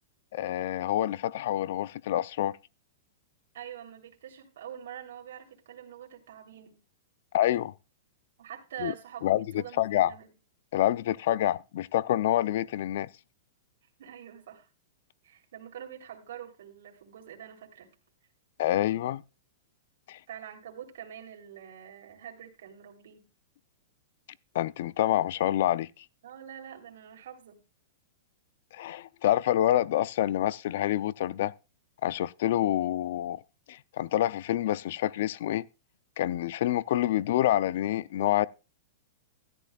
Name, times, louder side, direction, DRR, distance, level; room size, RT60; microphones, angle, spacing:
voice 1, 0.3-2.6 7.3-7.7 8.8-8.9 9.2-10.1 10.7-13.1 18.6-19.2 20.1-20.2 24.5-25.9 28.7-31.5 32.0-33.4 33.7-35.7 36.2-38.5, left 13 dB, 55° left, 0.4 m, -27 dB
voice 2, 3.5-6.8 8.4-10.3 14.0-14.7 15.2-17.9 20.3-23.3 26.2-27.6, right 9 dB, 70° right, 3.0 m, -45 dB
13.5 x 11.5 x 2.3 m
hypercardioid pair, 155°, 0 cm